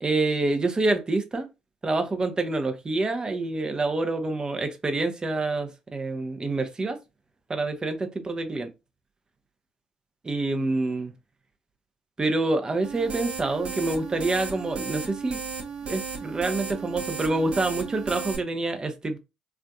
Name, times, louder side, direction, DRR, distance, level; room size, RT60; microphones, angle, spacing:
voice 1, 0.0-1.5 1.8-7.0 7.5-8.7 10.2-11.1 12.2-15.4 15.9-19.2, right 2 dB, 30° right, 0.7 m, -27 dB
sound 1, 12.8-18.4, right 5 dB, 50° right, 1.0 m, -35 dB
3.4 x 2.6 x 2.3 m
hypercardioid pair, 50°, 3 cm